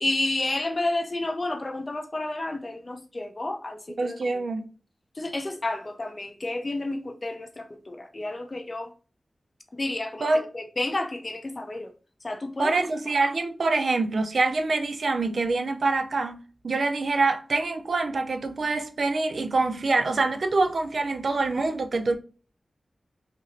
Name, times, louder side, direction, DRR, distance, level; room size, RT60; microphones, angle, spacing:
voice 1, 0.0-4.5 5.2-8.9 9.7-11.9 12.2-12.9, left 2 dB, 35° left, 0.5 m, -31 dB
voice 2, 4.0-4.7 10.2-10.4 12.6-22.2, right 3 dB, 70° right, 0.4 m, -25 dB
3.1 x 2.8 x 2.6 m
wide cardioid pair, 105°, 0 cm